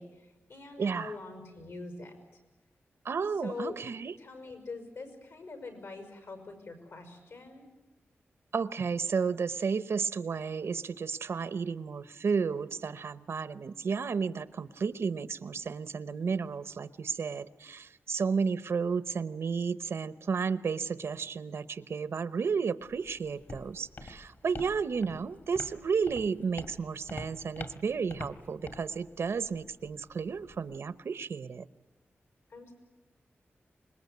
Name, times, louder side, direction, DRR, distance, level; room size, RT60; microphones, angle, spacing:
voice 1, 0.0-2.1 3.4-3.8 4.2-7.7 32.5-32.7, left 3 dB, 75° left, 6 dB, 6.1 m, -43 dB
voice 2, 0.8-1.1 3.0-4.1 8.5-31.7, right 5 dB, 75° right, 14 dB, 0.9 m, -32 dB
Walk footsteps, 22.8-30.8, left 2 dB, 55° left, 2.5 m, -47 dB
26.0 x 21.5 x 9.5 m, 1.1 s
wide cardioid pair, 120°, 4 cm